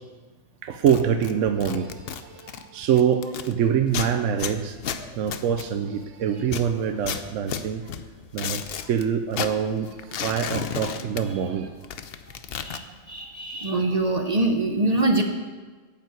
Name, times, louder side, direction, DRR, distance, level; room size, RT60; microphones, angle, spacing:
voice 1, 0.6-4.8 5.2-7.8 8.3-11.7, right 8 dB, 65° right, 7 dB, 0.9 m, -25 dB
Tearing T-Shirt Cloth, 0.7-3.5 3.9-6.1 6.4-9.0 9.3-11.6 11.8-12.8, left 8 dB, 60° left, 0.6 m, -33 dB
voice 2, 4.9-5.2 11.4-11.6 12.6-15.2, right 2 dB, 35° right, 4 dB, 0.7 m, -25 dB
9.4 x 7.3 x 7.8 m, 1.4 s
omnidirectional pair, 1.5 m